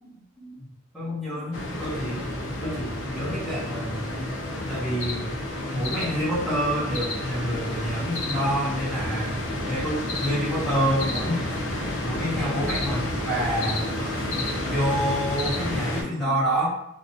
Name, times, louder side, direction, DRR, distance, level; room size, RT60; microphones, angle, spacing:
voice 1, 0.4-0.7 0.9-2.2 2.6-4.3 4.7-5.3 5.7-9.4 9.7-11.4 12.0-13.9 14.7-16.7, equal, ahead, -10 dB, 0.9 m, -28 dB
sound 1, 1.5-16.0, left 1 dB, 65° left, 0.5 m, -30 dB
2.5 x 2.1 x 2.7 m, 0.79 s
head